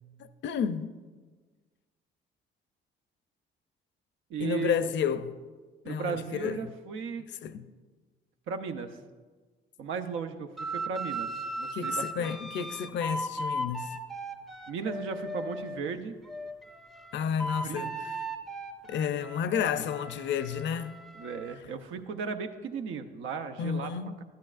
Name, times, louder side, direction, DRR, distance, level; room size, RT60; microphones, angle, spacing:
voice 1, 0.4-1.0 4.4-5.4 5.9-6.7 7.4-7.7 11.7-14.0 17.1-18.0 18.9-20.9 23.6-24.2, left 7 dB, 65° left, 0.5 m, -31 dB
voice 2, 4.3-4.8 5.8-7.2 8.5-9.0 9.8-11.3 11.5-12.3 14.7-16.2 17.6-17.9 21.2-23.9, right 5 dB, 80° right, 0.7 m, -35 dB
sound 1, 10.6-15.8 16.3-21.6, right 1 dB, ahead, 0.5 m, -37 dB
11.5 x 10.5 x 2.5 m
cardioid pair, 90°, 20 cm